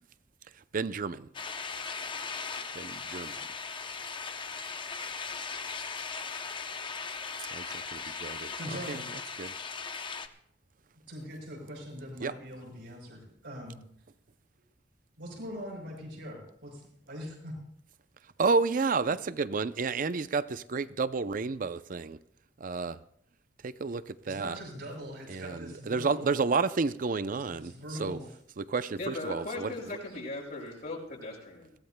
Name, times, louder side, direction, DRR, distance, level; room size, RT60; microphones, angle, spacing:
voice 1, 0.6-1.3 2.7-3.5 7.5-8.6 8.9-9.0 9.4-9.5 12.2-12.3 18.4-22.2 22.6-23.0 23.6-24.6 25.3-28.2 28.6-29.7, right 4 dB, 50° right, 0.5 m, -31 dB
sound 1, 1.3-10.3, left 5 dB, 25° left, 0.7 m, -38 dB
voice 2, 8.6-9.1 11.1-13.8 15.2-17.5 24.2-26.3 27.6-28.2, equal, 85° right, 6.0 m, -42 dB
voice 3, 29.0-31.7, left 2 dB, 55° left, 5.4 m, -38 dB
22.5 x 16.5 x 2.2 m
head